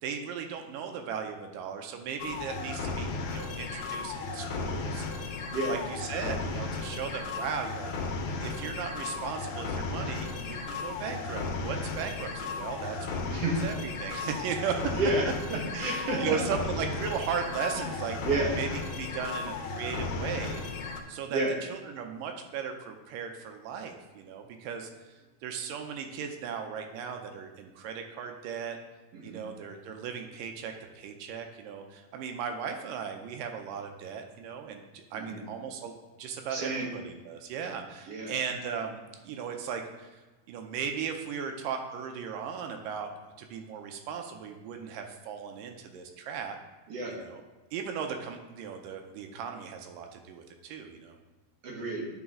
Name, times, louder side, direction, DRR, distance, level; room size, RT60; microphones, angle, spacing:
voice 1, 0.0-5.1 5.7-15.0 15.7-18.2 18.5-18.7 18.9-20.6 21.1-21.4 21.7-24.9 25.4-28.8 29.2-35.9 36.2-40.1 40.5-43.1 43.4-46.6 47.1-47.4 47.7-51.2, right 7 dB, 80° right, 5 dB, 2.2 m, -37 dB
sound 1, 2.2-21.0, left 4 dB, 75° left, 1.8 m, -35 dB
voice 2, 14.9-16.6 17.8-17.9 18.2-18.6 21.3-21.5 29.1-29.4 35.1-35.4 36.5-36.9 38.1-38.3 46.9-47.1 51.6-52.0, right 2 dB, 60° right, -2 dB, 1.8 m, -30 dB
10.0 x 3.9 x 3.6 m, 1.2 s
omnidirectional pair, 4.0 m